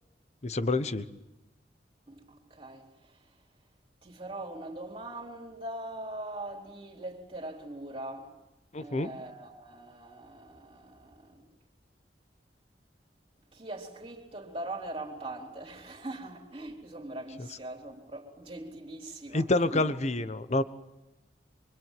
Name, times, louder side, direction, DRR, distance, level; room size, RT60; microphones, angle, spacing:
voice 1, 0.4-1.1 8.7-9.1 17.4-17.5 19.3-20.6, left 2 dB, 40° left, 1.2 m, -28 dB
voice 2, 2.1-3.3 4.0-8.3 8.8-11.5 13.5-19.8, right 1 dB, 35° right, 3.8 m, -41 dB
25.5 x 24.5 x 9.3 m
head